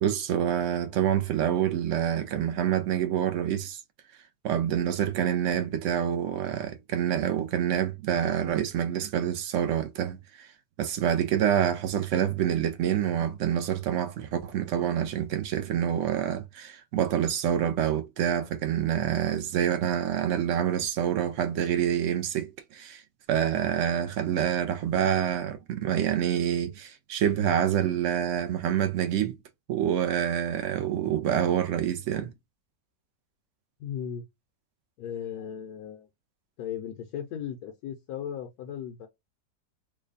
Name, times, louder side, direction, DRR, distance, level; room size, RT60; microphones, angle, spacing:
voice 1, 0.0-3.8 4.4-10.5 10.8-23.0 23.3-29.3 29.7-32.3, right 9 dB, 70° right, 0.7 m, -27 dB
voice 2, 33.8-34.2 35.0-36.1 36.6-39.1, left 9 dB, 70° left, 1.1 m, -36 dB
3.3 x 2.2 x 3.8 m
omnidirectional pair, 1.8 m